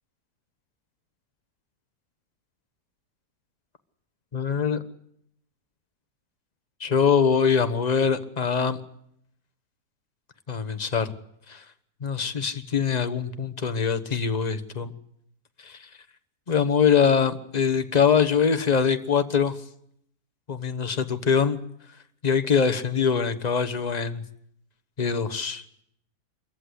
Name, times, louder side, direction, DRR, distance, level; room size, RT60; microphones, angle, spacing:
voice 1, 4.3-4.8 6.8-8.8 10.5-11.1 11.5-11.6 12.0-14.9 15.6-15.9 16.5-19.6 20.5-21.6 22.2-24.2 25.0-25.6, left 6 dB, 30° left, 10 dB, 1.1 m, -23 dB
24.5 x 14.5 x 9.8 m, 0.73 s
omnidirectional pair, 1.7 m